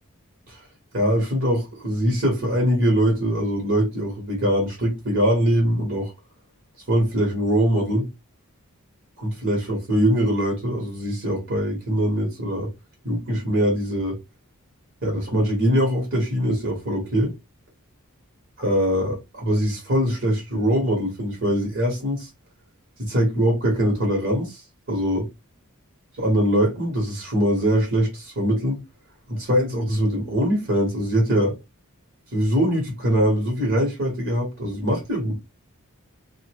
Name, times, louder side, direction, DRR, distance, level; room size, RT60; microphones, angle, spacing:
voice 1, 0.9-6.1 6.9-8.1 9.2-12.7 13.0-14.2 15.0-17.3 18.6-22.3 23.0-24.6 24.9-25.3 26.2-28.8 29.3-31.5 32.3-35.3, equal, 55° right, 1.1 m, -22 dB
2.5 x 2.1 x 2.8 m
head